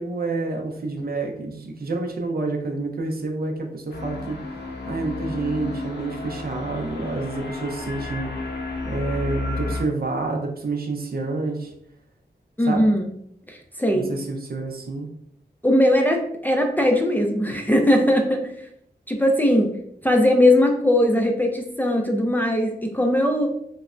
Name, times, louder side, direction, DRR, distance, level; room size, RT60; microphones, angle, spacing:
voice 1, 0.0-4.4 4.9-8.3 8.8-11.7 12.7-12.8 13.9-15.1, right 3 dB, 60° right, 3 dB, 0.5 m, -28 dB
sound 1, 3.9-9.8, left 3 dB, 70° left, 0.6 m, -32 dB
voice 2, 12.6-13.0 13.5-14.1 15.6-18.7 19.1-19.7 20.0-23.5, left 1 dB, 10° left, 2 dB, 0.4 m, -20 dB
3.2 x 2.1 x 2.4 m, 0.71 s
wide cardioid pair, 70°, 18 cm